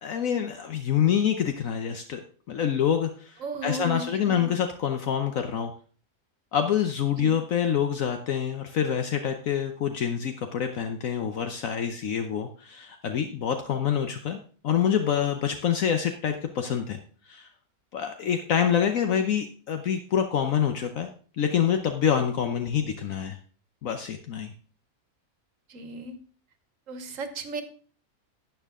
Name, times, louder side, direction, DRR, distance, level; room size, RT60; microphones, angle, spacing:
voice 1, 0.0-2.2 2.5-5.7 6.5-14.4 14.6-17.0 17.2-17.5 17.9-21.1 21.4-23.4 23.8-24.5, left 8 dB, 70° left, 6 dB, 1.2 m, -26 dB
voice 2, 3.4-4.5 7.2-7.3 25.7-26.2 26.9-27.6, right 2 dB, 65° right, 10 dB, 1.5 m, -35 dB
12.0 x 8.1 x 3.6 m, 0.43 s
omnidirectional pair, 1.5 m